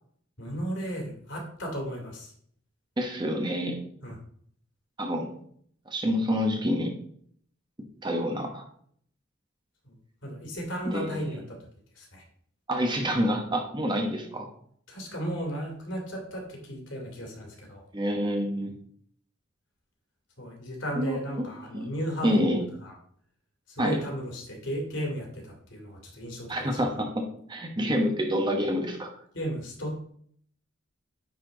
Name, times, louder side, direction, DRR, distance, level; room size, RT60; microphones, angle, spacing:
voice 1, 0.4-2.3 4.0-4.2 9.8-9.9 10.2-11.6 12.0-12.2 14.9-17.8 20.4-22.5 22.8-22.9 23.7-26.8 29.3-30.0, equal, 60° left, 1 dB, 2.5 m, -35 dB
voice 2, 3.0-3.8 5.0-5.3 5.9-6.9 8.0-8.6 10.9-11.4 12.7-14.5 17.9-18.7 21.0-21.5 21.7-21.9 22.2-22.6 23.8-24.0 26.5-27.2 27.5-29.1, equal, 20° right, 2 dB, 1.1 m, -27 dB
9.6 x 4.5 x 3.8 m, 0.62 s
head